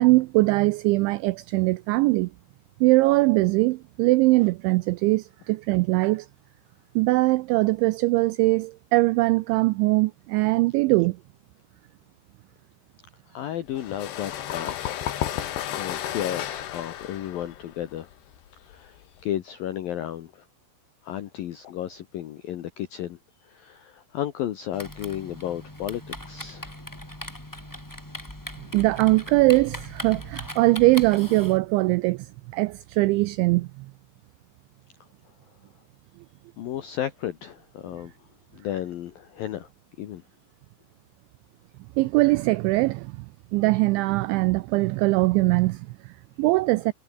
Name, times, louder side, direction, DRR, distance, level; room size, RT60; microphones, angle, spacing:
voice 1, 0.0-2.3 2.8-6.3 7.0-11.2 28.7-32.3 32.5-33.9 42.0-43.3 43.5-46.9, right 22 dB, 90° right, 2.6 m, -21 dB
voice 2, 13.3-15.0 15.7-18.1 18.6-20.5 21.0-26.7 36.6-38.1 38.5-39.7 40.0-40.2, left 11 dB, 80° left, 2.1 m, -33 dB
sound 1, 13.7-19.2, left 11 dB, 65° left, 3.6 m, -33 dB
Typing, 24.7-31.6, left 1 dB, 5° left, 2.6 m, -39 dB
omnidirectional pair, 6.0 m